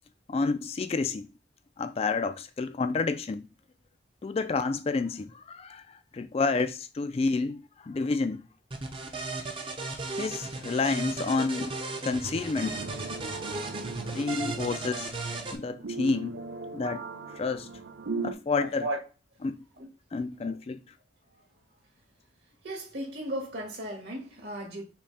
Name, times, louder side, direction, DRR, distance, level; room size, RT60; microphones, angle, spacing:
voice 1, 0.3-1.3 1.8-3.5 4.2-8.4 10.2-11.7 12.0-12.8 14.1-15.1 15.5-16.4 16.7-17.1 17.3-17.7 18.2-18.9 19.4-19.6 20.1-20.8, left 4 dB, 35° left, 0.3 m, -29 dB
sound 1, 8.7-15.6, right 3 dB, 30° right, 0.6 m, -36 dB
sound 2, 12.6-18.3, right 4 dB, 85° right, 0.5 m, -39 dB
voice 2, 18.6-19.0 19.8-19.9 20.4-20.6 22.6-24.8, right 1 dB, 65° right, 1.8 m, -35 dB
5.8 x 2.2 x 4.1 m
head